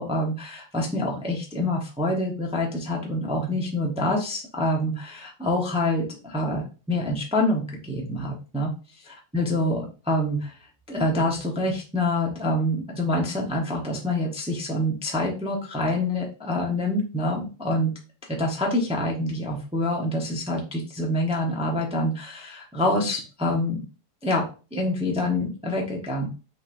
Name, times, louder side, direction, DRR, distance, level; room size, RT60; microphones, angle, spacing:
voice 1, 0.0-8.7 9.0-10.6 10.9-17.9 18.4-23.8 24.2-24.4 24.7-26.3, left 1 dB, 5° right, -1 dB, 0.4 m, -26 dB
5.9 x 3.3 x 2.6 m, 0.34 s
omnidirectional pair, 2.0 m